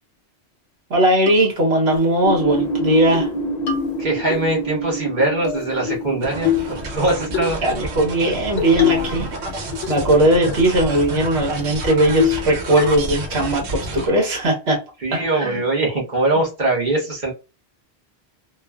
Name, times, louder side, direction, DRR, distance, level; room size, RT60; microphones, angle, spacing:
voice 1, 0.9-3.3 7.3-9.3 9.5-14.8 15.1-15.6, right 1 dB, 75° right, 0 dB, 1.3 m, -19 dB
sound 1, 1.3-1.4 1.9-2.1 2.5-2.6 2.9-3.3 3.7-4.4 5.4-6.1 6.4-6.8 7.3-7.5 8.6-9.2 9.5-10.2 10.5-10.6 10.9-11.2 11.6-11.7 12.2-12.5 12.8-13.2, left 9 dB, 80° left, 0.9 m, -23 dB
sound 2, 2.2-7.5, right 2 dB, 45° left, 0.7 m, -27 dB
voice 2, 4.0-6.5 6.9-7.6 15.0-17.3, right 2 dB, 45° right, -2 dB, 1.1 m, -21 dB
sound 3, 6.2-14.1, right 1 dB, 90° right, 1.0 m, -30 dB
3.0 x 2.1 x 2.3 m, 0.29 s
omnidirectional pair, 1.1 m